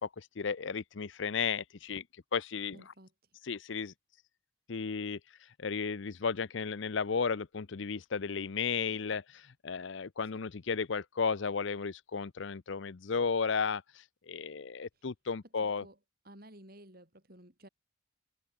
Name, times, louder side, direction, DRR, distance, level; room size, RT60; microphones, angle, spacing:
voice 1, 0.0-2.0 2.3-2.8 3.5-3.9 4.7-5.2 5.6-15.8, left 5 dB, 65° left, 0.6 m, -34 dB
voice 2, 2.7-3.4 10.2-10.3 14.9-15.1 15.4-16.0 16.2-17.7, right 1 dB, 45° right, 7.2 m, -55 dB
head